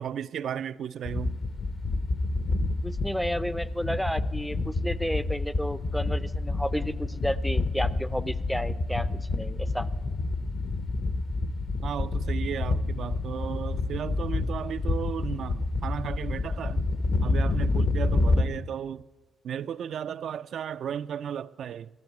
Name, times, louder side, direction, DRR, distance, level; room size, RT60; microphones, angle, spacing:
voice 1, 0.0-1.4 11.8-16.8 17.2-19.0 19.4-21.9, right 9 dB, 65° right, 0.3 m, -34 dB
sound 1, 1.0-18.4, left 2 dB, 45° left, 0.8 m, -28 dB
voice 2, 2.8-9.9, equal, ahead, 0.4 m, -32 dB
13.0 x 7.3 x 9.1 m
cardioid pair, 90°, 0 cm